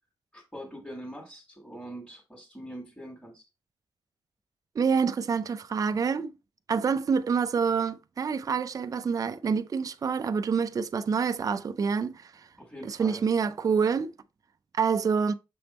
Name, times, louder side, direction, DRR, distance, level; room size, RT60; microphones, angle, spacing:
voice 1, 0.3-3.4 12.6-13.2, equal, 5° left, 1.5 m, -43 dB
voice 2, 4.8-6.3 6.7-12.5 12.9-14.1 14.8-15.3, right 6 dB, 40° right, 0.4 m, -27 dB
6.8 x 3.4 x 4.1 m
wide cardioid pair, 165°, 9 cm